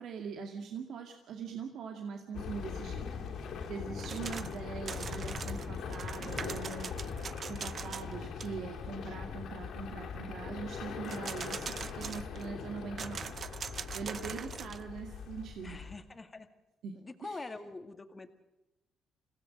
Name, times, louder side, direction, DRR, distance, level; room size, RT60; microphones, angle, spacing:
voice 1, 0.0-3.1 3.7-6.9 7.5-13.7 13.9-15.9 16.8-17.0 17.2-17.4, right 5 dB, 75° right, 4 dB, 2.2 m, -42 dB
sound 1, 2.3-16.0, left 6 dB, 70° left, 3.3 m, -41 dB
voice 2, 3.7-4.4 12.4-12.8 14.1-14.5 15.6-16.5 16.9-18.3, left 3 dB, 25° left, 8 dB, 2.1 m, -47 dB
sound 2, 4.0-4.6 4.9-8.1 8.4-8.5 11.0-12.5 13.0-14.8, right 6 dB, 50° right, 0.7 m, -42 dB
26.0 x 16.5 x 6.5 m, 1.0 s
cardioid pair, 90°, 0 cm